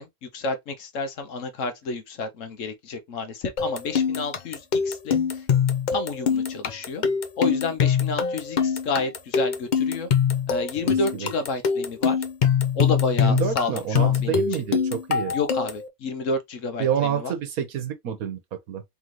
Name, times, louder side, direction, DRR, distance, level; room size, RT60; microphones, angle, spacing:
voice 1, 0.0-5.5 5.9-7.0 7.4-10.1 10.5-12.2 12.7-14.4 15.3-17.3, left 3 dB, 65° left, 1.1 m, -30 dB
sound 1, 3.6-15.9, left 7 dB, 50° left, 0.6 m, -23 dB
voice 2, 10.8-11.3 13.2-15.3 16.8-18.8, right 8 dB, 80° right, 1.4 m, -28 dB
3.8 x 3.6 x 3.0 m
omnidirectional pair, 1.5 m